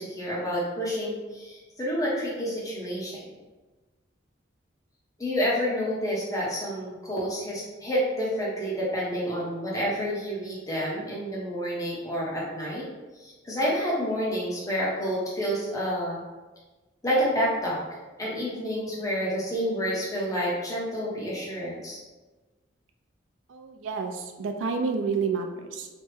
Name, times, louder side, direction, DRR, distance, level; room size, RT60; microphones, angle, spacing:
voice 1, 0.0-3.2 5.2-12.8 13.2-16.2 17.0-17.8 18.2-22.0, equal, 15° left, -6 dB, 0.7 m, -29 dB
voice 2, 23.5-25.9, right 5 dB, 75° right, 5 dB, 0.4 m, -29 dB
3.3 x 2.0 x 3.1 m, 1.2 s
head